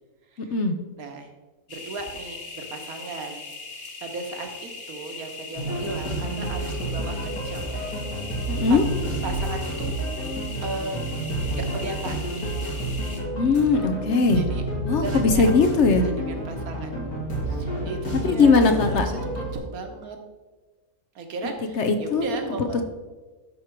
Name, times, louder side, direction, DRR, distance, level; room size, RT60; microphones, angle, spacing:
voice 1, 1.0-1.3 1.7-3.5 3.7-7.8 8.7-9.0 9.2-9.9 10.6-11.1 11.5-12.2 14.3-14.6 14.9-15.5 16.0-20.2 21.1-22.8, right 3 dB, 70° right, 4 dB, 1.6 m, -36 dB
sound 1, 1.7-13.2, left 4 dB, 40° left, 1.5 m, -39 dB
sound 2, 5.6-19.6, right 1 dB, 70° left, 3.0 m, -29 dB
voice 2, 8.5-8.8 13.4-14.4 14.9-16.1 18.2-19.1 21.8-22.4 22.7-22.8, left 4 dB, 55° left, 7 dB, 0.9 m, -20 dB
12.0 x 4.8 x 4.5 m, 1.3 s
omnidirectional pair, 1.6 m